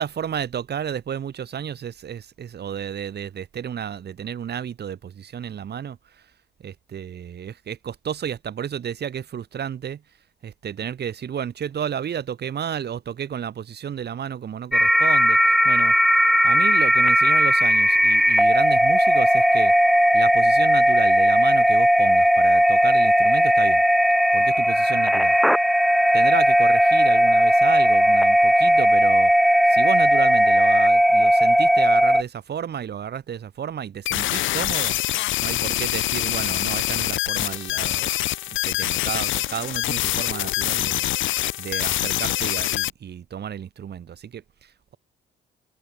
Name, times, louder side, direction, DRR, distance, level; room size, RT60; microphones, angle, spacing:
voice 1, 0.0-6.3 6.6-10.0 10.4-15.9 16.4-19.7 20.1-23.8 24.3-25.4 26.1-29.3 29.7-38.3 38.6-41.1 41.6-45.0, right 8 dB, 55° right, 2.8 m, -32 dB
sound 1, 14.7-32.2, equal, ahead, 1.5 m, -17 dB
sound 2, 34.1-42.9, left 15 dB, 75° left, 0.6 m, -25 dB
cardioid pair, 90°, 20 cm